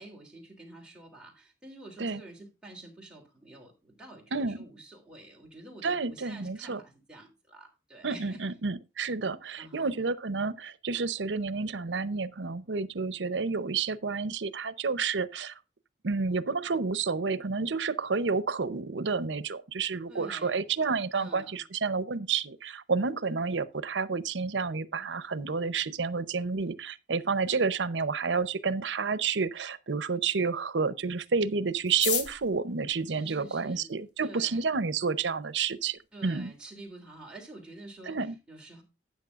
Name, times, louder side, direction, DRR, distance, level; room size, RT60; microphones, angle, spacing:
voice 1, 0.0-8.4 9.6-9.9 20.1-20.6 21.1-21.6 33.1-33.9 34.2-34.6 36.1-38.8, right 2 dB, 5° right, 3.2 m, -48 dB
voice 2, 4.3-4.6 5.8-6.8 8.0-15.5 16.0-36.5 38.1-38.3, right 4 dB, 85° right, 0.7 m, -30 dB
sound 1, 31.8-34.1 34.9-35.0 35.2-35.3 35.6-36.0 36.4-36.5 36.6-37.1 37.4-37.6 37.9-38.2, left 7 dB, 80° left, 1.8 m, -35 dB
12.5 x 8.9 x 2.5 m
head